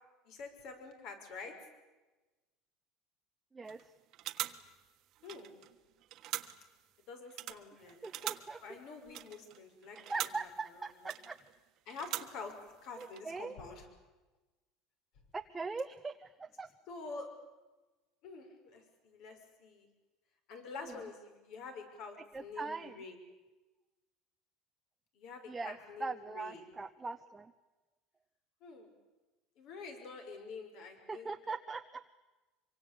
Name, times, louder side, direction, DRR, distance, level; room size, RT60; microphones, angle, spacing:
voice 1, 0.2-1.5 5.2-5.5 7.1-8.1 8.6-10.3 10.7-10.8 11.9-13.9 16.9-17.3 18.2-19.9 20.5-23.2 25.1-26.6 28.6-28.9 29.6-31.3, left 4 dB, 55° left, 6 dB, 6.2 m, -47 dB
sound 1, 3.7-3.9 4.1-5.8 6.0-6.8 7.3-10.6 11.0-11.6 11.9-12.7 12.9-13.2, right 14 dB, 45° right, 1.4 m, -43 dB
voice 2, 8.0-8.6 9.9-11.4 13.0-13.5 15.3-16.7 22.3-23.0 25.5-27.5 31.1-32.0, right 4 dB, 10° right, 7 dB, 0.8 m, -41 dB
25.0 x 24.5 x 8.6 m, 1.2 s
cardioid pair, 155°, 0 cm